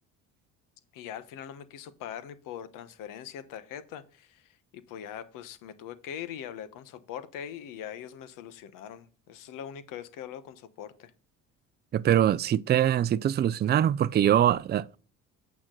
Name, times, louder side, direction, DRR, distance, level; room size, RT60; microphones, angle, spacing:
voice 1, 0.9-11.1, left 9 dB, 80° left, 1.1 m, -42 dB
voice 2, 11.9-15.0, right 10 dB, 30° right, 0.4 m, -23 dB
8.9 x 6.1 x 3.8 m
cardioid pair, 95°, 32 cm